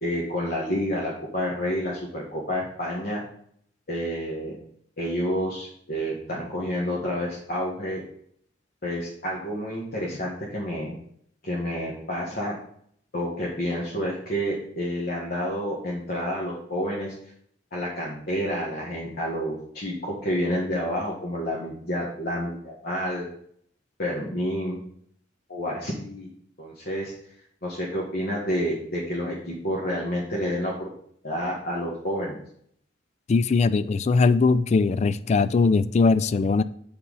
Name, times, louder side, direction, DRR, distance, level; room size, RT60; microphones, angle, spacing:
voice 1, 0.0-3.2 3.9-4.6 5.0-8.0 8.8-10.9 11.4-12.5 13.1-17.1 17.7-23.3 24.0-24.8 25.5-26.3 26.6-27.1 27.6-30.9 31.2-32.4, equal, 55° left, 1.5 m, -29 dB
voice 2, 33.3-36.6, left 4 dB, 35° left, 0.3 m, -20 dB
6.9 x 5.6 x 4.0 m
head